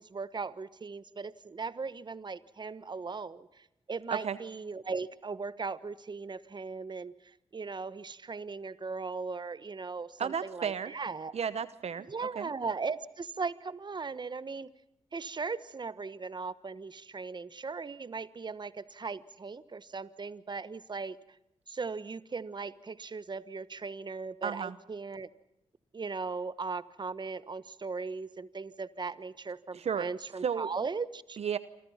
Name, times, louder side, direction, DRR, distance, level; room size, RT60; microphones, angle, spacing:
voice 1, 0.0-11.3 12.1-14.7 15.1-21.2 21.7-25.3 25.9-31.4, right 4 dB, 40° right, 16 dB, 1.3 m, -38 dB
voice 2, 10.2-10.9 11.3-12.5 24.4-24.8 29.7-30.1 30.4-30.7 31.4-31.6, right 7 dB, 65° right, 15 dB, 1.0 m, -33 dB
28.0 x 25.5 x 5.7 m, 0.84 s
cardioid pair, 60°, 12 cm